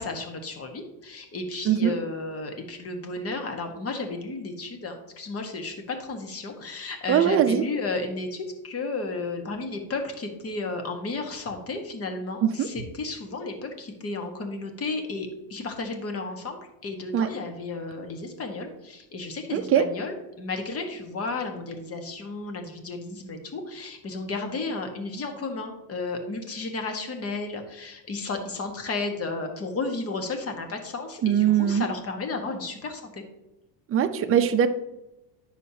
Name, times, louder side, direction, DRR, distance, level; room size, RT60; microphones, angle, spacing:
voice 1, 0.0-33.2, left 3 dB, 30° left, 5 dB, 1.4 m, -33 dB
voice 2, 1.6-2.0 7.1-7.6 12.4-12.7 17.1-17.3 19.5-19.9 31.2-31.9 33.9-34.7, right 9 dB, 25° right, 6 dB, 0.6 m, -21 dB
9.9 x 6.5 x 2.8 m, 0.94 s
supercardioid pair, 125°, 50 cm